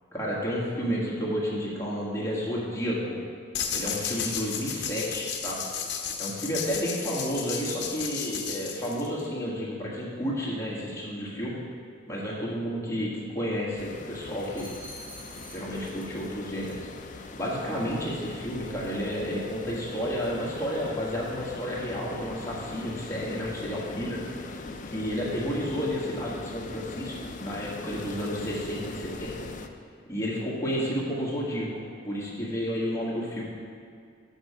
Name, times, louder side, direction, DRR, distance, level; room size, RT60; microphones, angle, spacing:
voice 1, 0.1-3.2 3.7-5.6 6.2-11.6 12.1-14.7 15.5-29.5 30.1-33.4, equal, 15° left, -6 dB, 1.6 m, -31 dB
sound 1, 3.5-9.2, left 7 dB, 60° left, 0.8 m, -33 dB
sound 2, 13.8-29.7, left 3 dB, 40° left, 0.4 m, -41 dB
sound 3, 14.4-16.3 16.6-16.9, equal, 10° right, 1.5 m, -47 dB
7.9 x 6.5 x 4.9 m, 2.3 s
head